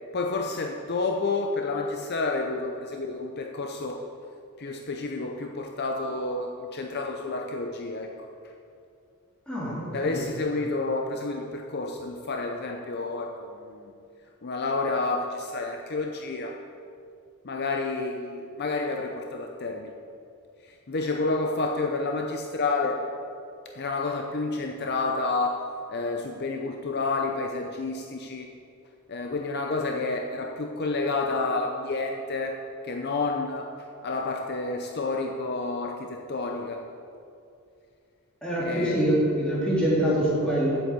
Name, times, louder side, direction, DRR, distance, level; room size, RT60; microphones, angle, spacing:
voice 1, 0.1-4.0 4.6-8.1 9.9-13.3 13.7-13.9 14.4-16.5 17.4-19.9 20.9-23.0 23.7-25.6 25.9-28.5 29.1-32.6 32.8-33.7 34.0-36.8 38.6-39.0, left 3 dB, 50° left, 3 dB, 0.6 m, -29 dB
voice 2, 9.5-10.2 38.4-40.8, right 1 dB, 5° left, -8 dB, 3.2 m, -25 dB
8.0 x 7.9 x 8.0 m, 2.5 s
head